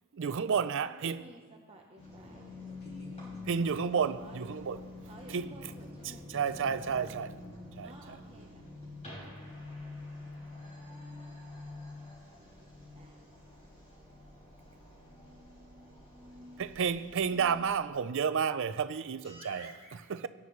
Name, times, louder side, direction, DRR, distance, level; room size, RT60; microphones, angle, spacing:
voice 1, 0.1-1.2 3.5-4.8 5.3-5.5 6.0-7.3 7.8-7.9 16.6-19.7 20.1-20.3, right 6 dB, 60° right, 0.5 m, -31 dB
voice 2, 0.7-2.6 4.2-4.5 5.1-6.3 7.8-8.6 12.4-13.4, right 2 dB, 25° right, 0.9 m, -54 dB
sound 1, 2.0-17.8, left 2 dB, 30° left, 4.0 m, -47 dB
voice 3, 2.5-3.7 6.0-7.3 19.2-20.1, equal, 50° left, 3.1 m, -53 dB
18.0 x 9.6 x 3.2 m
head